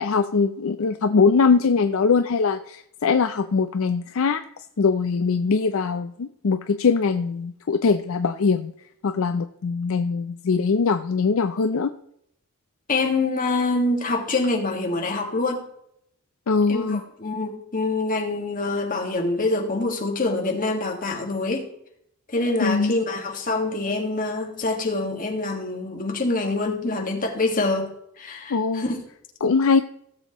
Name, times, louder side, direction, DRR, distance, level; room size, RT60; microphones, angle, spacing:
voice 1, 0.0-4.4 4.8-8.7 9.0-11.9 16.5-17.0 22.6-23.0 28.5-28.8 29.4-29.8, left 5 dB, 65° left, 9 dB, 0.4 m, -22 dB
voice 2, 12.9-15.6 16.7-21.7 22.3-27.9 28.2-29.0, left 2 dB, 40° left, 2 dB, 1.7 m, -25 dB
17.0 x 7.3 x 3.0 m, 0.73 s
head